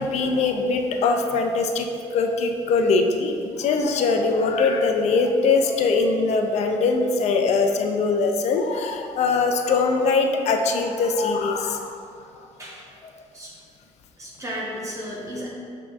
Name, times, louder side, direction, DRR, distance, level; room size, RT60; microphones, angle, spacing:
voice 1, 0.0-11.9, left 4 dB, 60° left, 4 dB, 0.4 m, -22 dB
voice 2, 12.6-12.9 13.3-13.5 14.2-15.5, equal, 25° right, -6 dB, 1.1 m, -34 dB
5.9 x 2.7 x 2.4 m, 2.4 s
cardioid pair, 85°, 13 cm